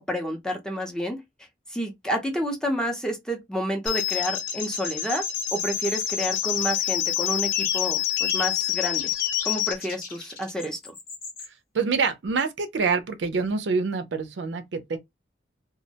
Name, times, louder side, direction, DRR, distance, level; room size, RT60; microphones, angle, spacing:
voice 1, 0.1-1.2 1.7-5.2 5.5-9.1 9.4-10.9, equal, 5° left, 0.5 m, -29 dB
sound 1, 3.9-9.8, left 13 dB, 90° left, 0.5 m, -27 dB
sound 2, 7.5-7.9 8.2-8.5 9.0-9.5 9.8-11.5, left 4 dB, 50° left, 0.8 m, -35 dB
voice 2, 11.7-15.0, right 4 dB, 80° right, 0.5 m, -26 dB
2.3 x 2.1 x 2.7 m
head